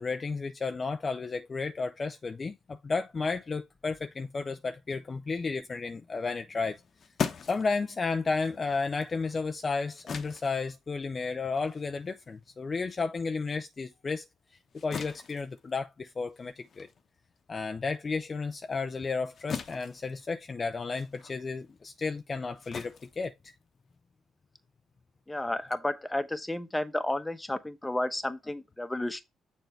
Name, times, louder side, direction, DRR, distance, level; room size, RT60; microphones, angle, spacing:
voice 1, 0.0-6.8 7.5-14.3 14.8-16.9 17.5-23.3, left 4 dB, 35° left, 0.5 m, -33 dB
sound 1, 6.6-13.4 13.8-24.0, left 7 dB, 55° left, 0.9 m, -42 dB
voice 2, 25.3-29.2, left 1 dB, 10° left, 1.0 m, -32 dB
6.8 x 4.5 x 3.2 m
cardioid pair, 90°, 0 cm